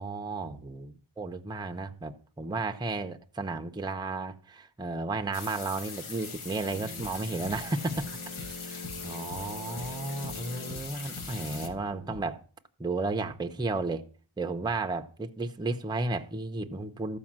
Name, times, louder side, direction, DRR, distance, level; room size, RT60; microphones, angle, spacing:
voice 1, 0.0-8.2 8.4-12.4 12.8-14.0 14.4-17.2, right 3 dB, 10° right, 0.5 m, -33 dB
sound 1, 5.3-11.7, left 5 dB, 85° left, 1.5 m, -42 dB
sound 2, 6.7-12.2, left 2 dB, 50° left, 5.8 m, -43 dB
13.0 x 5.2 x 7.3 m
wide cardioid pair, 175°, 48 cm